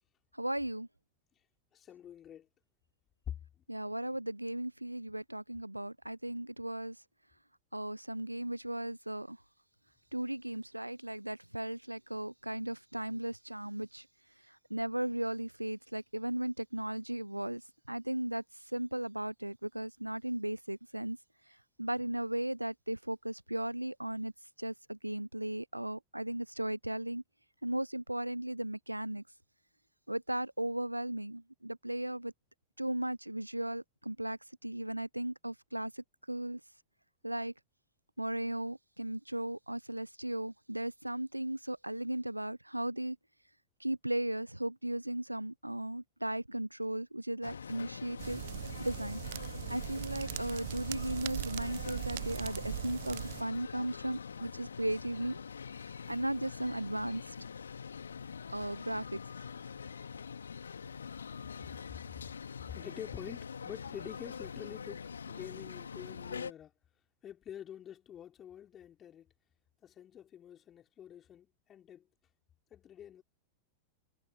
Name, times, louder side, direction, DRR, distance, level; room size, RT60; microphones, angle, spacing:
voice 1, 0.3-0.9 3.7-7.0 7.7-9.4 10.1-14.1 14.5-21.2 21.5-24.3 24.6-27.2 27.6-29.2 30.1-32.3 32.8-36.6 37.2-37.5 38.2-43.2 43.8-48.4 48.8-49.2 49.7-55.4 55.8-57.4 58.5-59.2, right 1 dB, 85° right, 0.6 m, -36 dB
voice 2, 1.7-2.5 3.3-3.4 62.7-66.7 67.2-69.3 69.8-72.1 72.7-73.2, left 10 dB, 25° left, 4.8 m, -47 dB
sound 1, 47.4-66.5, left 6 dB, 70° left, 2.3 m, -44 dB
sound 2, 48.2-53.4, right 15 dB, 55° right, 0.8 m, -40 dB
figure-of-eight pair, 90°, 0 cm